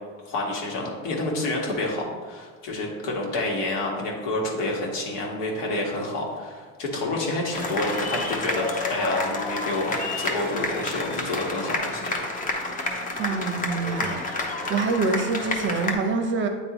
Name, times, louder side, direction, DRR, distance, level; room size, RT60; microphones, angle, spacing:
voice 1, 0.2-12.2, left 2 dB, 75° left, -2 dB, 1.7 m, -28 dB
sound 1, 7.5-15.9, left 2 dB, 25° left, 0.8 m, -29 dB
voice 2, 13.2-16.5, right 4 dB, 35° right, 5 dB, 0.7 m, -26 dB
8.8 x 3.7 x 3.0 m, 1.5 s
supercardioid pair, 125°, 36 cm